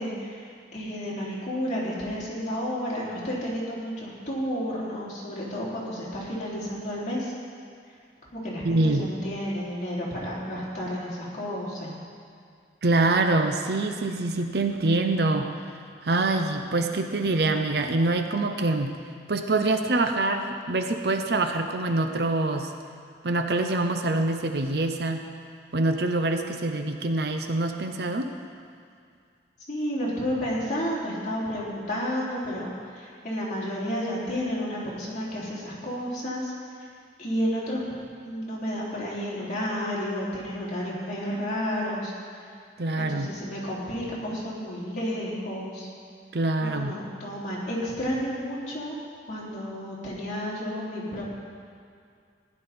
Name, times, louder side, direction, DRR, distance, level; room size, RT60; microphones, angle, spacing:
voice 1, 0.0-7.3 8.3-11.9 29.7-36.5 37.2-37.8 38.2-42.1 43.0-45.9 46.6-49.0 49.3-51.3, equal, 45° left, -7 dB, 3.5 m, -31 dB
voice 2, 8.6-9.1 12.8-15.5 16.0-19.0 19.3-22.7 23.2-25.2 25.7-28.3 42.8-43.3 46.3-47.0, right 2 dB, 60° right, 6 dB, 0.7 m, -25 dB
15.5 x 10.5 x 4.3 m, 2.3 s
head